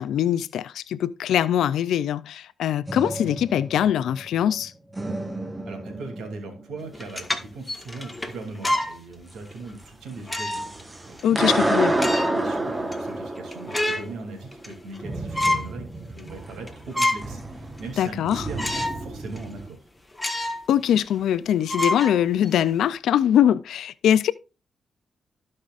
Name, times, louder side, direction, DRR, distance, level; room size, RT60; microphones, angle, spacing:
voice 1, 0.0-4.7 11.2-11.9 18.0-18.5 20.7-24.3, left 10 dB, 85° left, 0.4 m, -22 dB
sound 1, 2.9-4.6 4.9-7.0 10.2-19.7, right 2 dB, 20° right, 1.2 m, -30 dB
voice 2, 5.6-19.8, right 3 dB, 85° right, 2.8 m, -39 dB
sound 2, 6.9-9.0 9.5-9.6 10.3-10.8 11.2-11.3 11.8-12.5 12.9-13.0 13.4-14.1 14.5-15.0 15.3-15.7 16.2-16.3 16.7-17.4 17.8-17.9 18.6-19.0 19.4-19.5 20.1-20.6 21.0-21.1 21.7-22.6, left 1 dB, 10° left, 1.4 m, -27 dB
16.0 x 5.4 x 2.5 m
cardioid pair, 90°, 0 cm